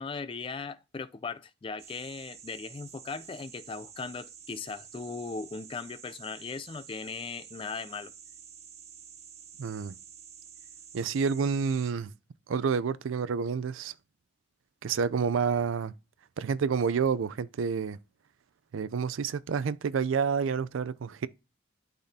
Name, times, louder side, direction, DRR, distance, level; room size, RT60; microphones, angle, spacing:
voice 1, 0.0-8.1, left 4 dB, 25° left, 0.3 m, -38 dB
sound 1, 1.8-11.9, right 8 dB, 35° right, 0.8 m, -50 dB
voice 2, 9.6-10.0 10.9-12.1 12.5-13.9 14.8-15.9 16.4-18.0 18.7-21.3, right 6 dB, 90° right, 0.4 m, -29 dB
11.5 x 4.1 x 2.7 m
head